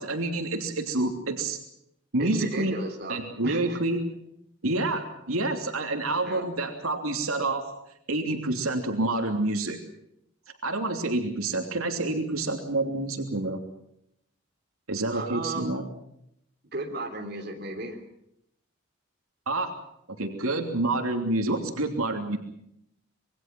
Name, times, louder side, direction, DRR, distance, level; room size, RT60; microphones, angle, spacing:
voice 1, 0.0-1.6 2.1-2.7 3.1-4.0 4.6-7.7 8.1-9.8 10.6-13.6 14.9-15.8 19.5-19.7 20.2-22.4, right 2 dB, 90° right, 4 dB, 3.1 m, -28 dB
voice 2, 2.2-3.8 6.2-6.4 15.1-15.8 16.7-18.0, right 2 dB, 50° right, 3 dB, 3.3 m, -35 dB
26.5 x 21.5 x 6.2 m, 0.76 s
head